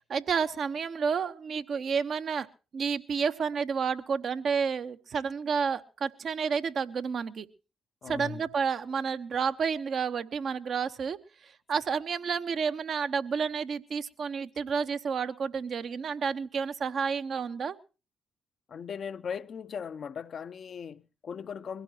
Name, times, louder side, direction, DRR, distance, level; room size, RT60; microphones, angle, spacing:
voice 1, 0.1-2.5 2.7-7.5 8.1-17.8, right 6 dB, 60° right, 1.0 m, -30 dB
voice 2, 8.0-8.5 18.7-21.8, left 7 dB, 55° left, 0.6 m, -38 dB
22.5 x 16.5 x 2.8 m
hypercardioid pair, 40°, 0 cm